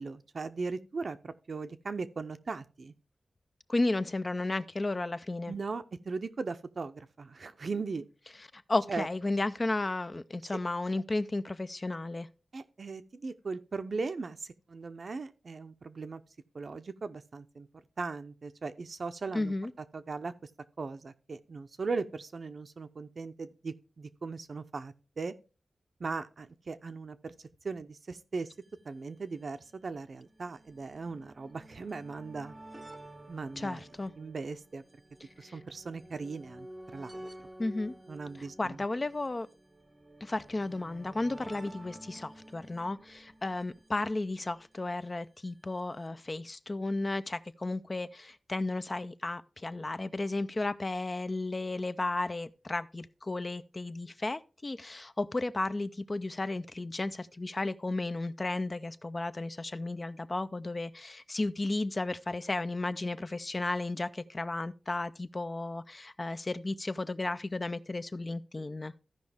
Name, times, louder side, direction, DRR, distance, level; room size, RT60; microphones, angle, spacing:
voice 1, 0.0-2.9 5.5-8.1 8.9-9.1 12.5-16.2 16.5-17.7 18.0-19.5 19.9-20.3 20.8-25.3 26.0-27.3 27.6-28.5 28.8-32.6 33.3-33.8 34.2-34.8 35.4-37.3 38.1-38.8, right 4 dB, 55° right, 0.6 m, -38 dB
voice 2, 3.7-5.5 8.4-12.3 19.3-19.7 33.6-34.1 35.4-35.6 37.6-37.9 38.4-39.5 40.2-68.9, left 2 dB, 30° left, 0.4 m, -34 dB
sound 1, 28.4-28.5 28.6-28.7 29.6-44.8 45.8-45.9 46.1-46.2, right 1 dB, 15° right, 0.7 m, -51 dB
14.5 x 5.2 x 3.4 m
wide cardioid pair, 95°, 0 cm